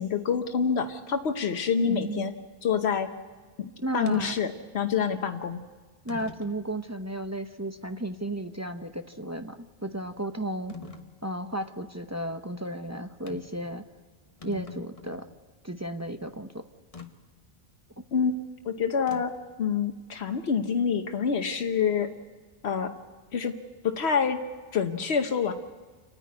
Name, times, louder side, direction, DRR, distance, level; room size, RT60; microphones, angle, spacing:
voice 1, 0.0-2.3 2.6-3.1 3.6-5.6 18.1-18.3 18.6-19.3 19.6-22.1 22.6-22.9 23.3-23.5 23.8-24.4 24.7-25.5, left 6 dB, 80° left, 6 dB, 1.2 m, -27 dB
voice 2, 1.9-2.3 3.8-4.4 6.0-10.8 11.2-13.8 14.4-15.3 15.6-16.7, right 1 dB, 15° right, 7 dB, 0.8 m, -34 dB
sound 1, 4.1-4.3 5.2-5.3 6.1-6.6 7.2-7.3 10.7-11.1 13.3-13.6 13.9-14.0 14.3-15.3 16.9-17.1 19.1-19.5, left 5 dB, 35° left, 1.2 m, -43 dB
29.5 x 10.0 x 9.5 m, 1.4 s
omnidirectional pair, 1.1 m